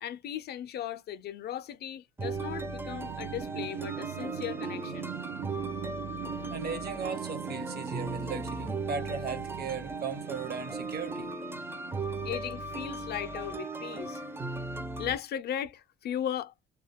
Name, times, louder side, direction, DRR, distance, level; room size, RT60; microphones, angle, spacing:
voice 1, 0.0-5.1 12.2-14.2 15.0-16.5, left 10 dB, 55° left, 0.4 m, -37 dB
sound 1, 2.2-15.2, right 2 dB, 10° right, 0.4 m, -37 dB
sound 2, 2.3-14.5, right 12 dB, 70° right, 0.5 m, -43 dB
voice 2, 6.5-11.3, right 5 dB, 50° right, 0.9 m, -37 dB
2.3 x 2.0 x 3.4 m
supercardioid pair, 85°, 20 cm